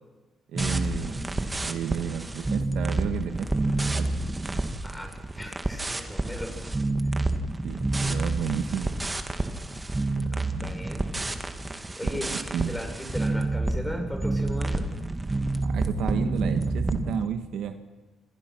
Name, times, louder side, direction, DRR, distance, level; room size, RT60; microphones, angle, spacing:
sound 1, 0.5-17.3, right 2 dB, 20° right, 1.8 m, -29 dB
voice 1, 0.5-1.3 1.6-4.1 7.6-8.9 12.0-12.8 15.6-17.8, right 8 dB, 80° right, 8 dB, 1.5 m, -32 dB
voice 2, 4.8-6.7 10.3-11.1 12.0-14.9, equal, 5° left, 2 dB, 7.1 m, -37 dB
27.5 x 24.0 x 6.1 m, 1.2 s
cardioid pair, 90°, 0 cm